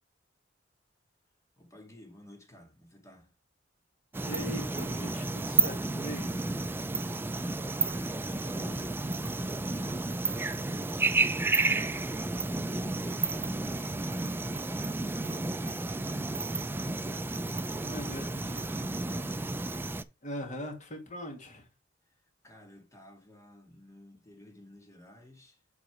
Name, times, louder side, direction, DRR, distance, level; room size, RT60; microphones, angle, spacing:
voice 1, 1.6-3.4 7.8-9.2 10.1-15.6 16.4-20.0 22.0-25.6, left 1 dB, 15° left, 2.0 m, -54 dB
sound 1, 4.1-20.0, right 3 dB, 10° right, 0.4 m, -31 dB
voice 2, 4.2-6.2 17.8-18.3 20.2-21.7, equal, 40° left, 2.1 m, -40 dB
7.7 x 4.1 x 4.7 m
head